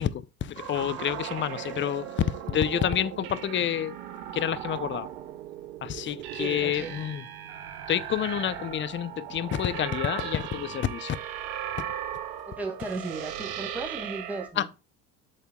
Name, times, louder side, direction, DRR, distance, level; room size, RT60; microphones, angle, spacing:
voice 1, 0.0-3.9 4.3-5.1 5.8-7.2 7.9-11.2 11.8-11.9 14.6-14.7, left 10 dB, 25° left, 0.6 m, -29 dB
sound 1, 0.6-14.5, right 10 dB, 65° right, 1.5 m, -37 dB
voice 2, 6.4-6.9 12.5-14.7, right 3 dB, 5° right, 2.2 m, -35 dB
8.0 x 7.6 x 2.3 m
hypercardioid pair, 75°, 47 cm